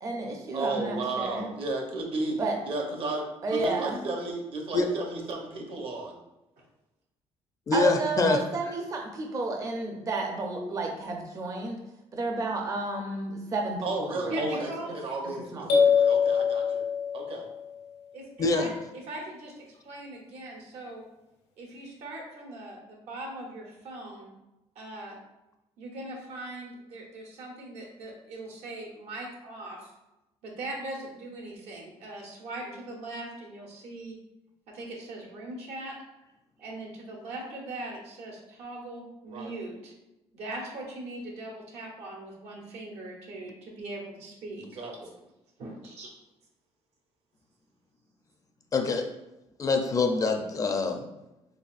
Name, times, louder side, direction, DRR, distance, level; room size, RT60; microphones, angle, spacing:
voice 1, 0.0-1.5 2.4-2.6 3.4-4.0 7.7-11.8 12.1-14.3 14.6-14.7 15.5-15.9, right 2 dB, 30° right, 1 dB, 0.5 m, -31 dB
voice 2, 0.5-6.2 13.8-15.4 15.7-16.8 17.1-17.5 32.7-32.8 39.3-39.5 44.7-45.1, right 2 dB, 55° right, 1 dB, 0.8 m, -33 dB
voice 3, 7.7-8.4 18.4-18.7 48.7-49.1 49.6-51.0, left 3 dB, 30° left, 5 dB, 0.4 m, -25 dB
voice 4, 14.3-14.9 18.1-18.7 19.0-21.0 21.6-24.3 24.7-25.2 25.8-29.9 30.4-34.1 34.7-35.9 36.6-39.9 40.3-44.7 45.6-46.2, right 2 dB, 85° right, -1 dB, 1.1 m, -40 dB
sound 1, 15.7-17.6, left 6 dB, 85° left, 0.7 m, -23 dB
4.0 x 3.5 x 2.4 m, 0.95 s
cardioid pair, 130°, 11 cm